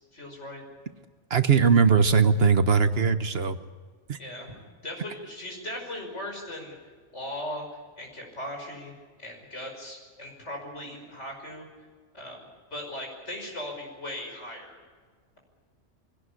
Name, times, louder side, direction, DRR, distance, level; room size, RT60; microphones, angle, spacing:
voice 1, 0.1-0.6 4.2-4.5 4.8-6.8 7.1-7.7 8.0-8.9 9.2-11.7 12.1-14.8, left 1 dB, 75° left, 1 dB, 6.0 m, -38 dB
voice 2, 1.3-3.6 4.1-4.2, right 5 dB, 60° right, 10 dB, 1.3 m, -20 dB
22.5 x 17.5 x 8.5 m, 1.5 s
omnidirectional pair, 1.2 m